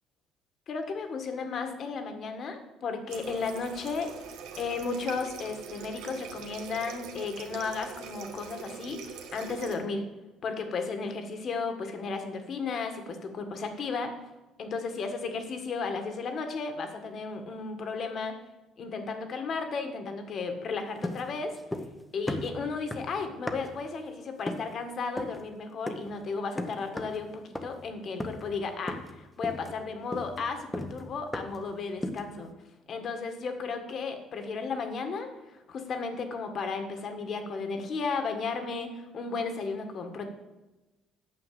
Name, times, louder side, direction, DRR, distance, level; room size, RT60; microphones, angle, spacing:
voice 1, 0.7-10.1 10.4-14.1 14.6-18.3 18.8-21.6 22.1-32.5 32.9-35.3 35.7-40.3, left 4 dB, 45° left, 6 dB, 1.6 m, -34 dB
Water tap faucet, 3.1-9.8, right 7 dB, 85° right, 1.3 m, -43 dB
sound 1, 21.0-22.0 22.3-23.9 24.5-24.8 25.2-25.4 25.9-26.2 26.6-27.2 27.5-27.9 28.2-28.6 28.9-29.2 29.4-31.7 32.0-32.4, left 1 dB, 10° left, 0.8 m, -36 dB
9.1 x 6.4 x 7.6 m, 1.1 s
cardioid pair, 125°, 0 cm